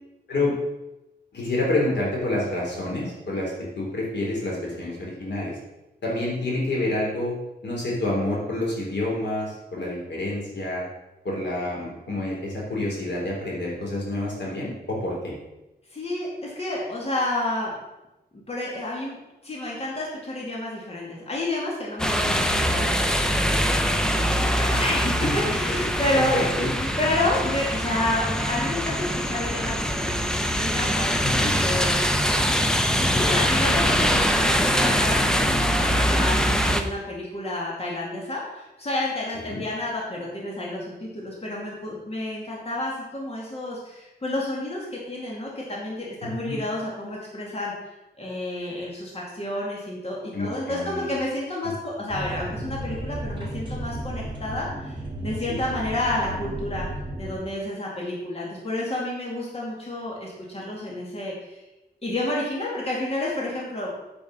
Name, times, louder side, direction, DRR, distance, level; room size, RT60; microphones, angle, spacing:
voice 1, 1.3-5.5 6.0-7.3 7.6-10.8 11.3-15.3 22.2-22.4 24.7-24.9 25.2-25.8 26.3-26.7 31.2-31.5 39.3-39.6 46.2-46.6 50.3-51.1 55.5-55.8, left 1 dB, 85° left, -4 dB, 3.4 m, -28 dB
voice 2, 15.9-17.7 18.3-19.2 19.4-26.5 26.7-32.0 33.0-35.2 35.5-47.7 48.2-56.9 57.2-61.6 62.0-64.0, left 1 dB, 35° left, -4 dB, 2.3 m, -30 dB
sound 1, 22.0-36.8, equal, 5° left, 0.7 m, -23 dB
sound 2, 52.1-57.3, right 1 dB, 25° right, 2.5 m, -33 dB
8.9 x 5.4 x 6.2 m, 0.98 s
wide cardioid pair, 130°, 18 cm